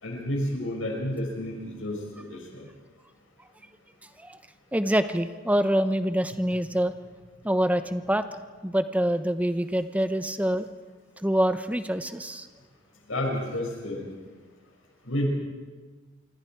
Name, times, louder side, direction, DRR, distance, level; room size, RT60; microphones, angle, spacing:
voice 1, 0.0-2.7 13.1-14.0 15.0-15.3, left 1 dB, 85° left, 0 dB, 6.0 m, -30 dB
voice 2, 4.7-6.9 7.4-8.2 8.6-10.7 11.2-12.5, equal, 5° right, 10 dB, 0.8 m, -25 dB
27.0 x 24.0 x 4.6 m, 1.4 s
head